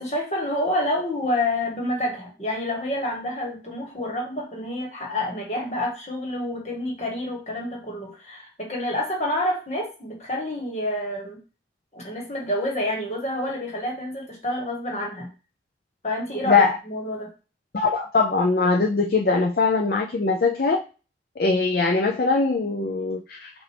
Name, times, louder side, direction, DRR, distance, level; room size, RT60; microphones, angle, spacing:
voice 1, 0.0-11.4 11.9-15.3 16.0-17.3, left 1 dB, 40° left, -1 dB, 1.6 m, -28 dB
voice 2, 16.4-16.8 17.7-20.8 21.4-23.5, left 4 dB, 55° left, 2 dB, 0.5 m, -21 dB
5.9 x 2.6 x 3.4 m, 0.34 s
head